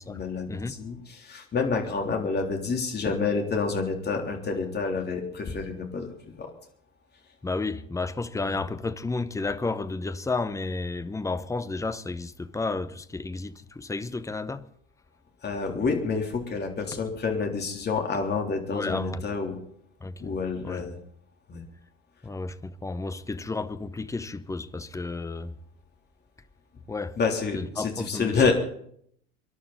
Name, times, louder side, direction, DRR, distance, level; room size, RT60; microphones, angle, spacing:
voice 1, 0.1-6.5 8.4-8.6 15.4-19.6 20.2-21.0 21.5-21.6 27.2-28.5, left 4 dB, 25° left, 3.5 m, -28 dB
voice 2, 7.4-14.6 18.7-19.2 20.0-20.3 20.6-20.8 22.2-25.5 26.9-27.2 27.5-28.3, left 3 dB, 10° left, 0.9 m, -32 dB
25.5 x 11.5 x 4.1 m
figure-of-eight pair, 75°, 37 cm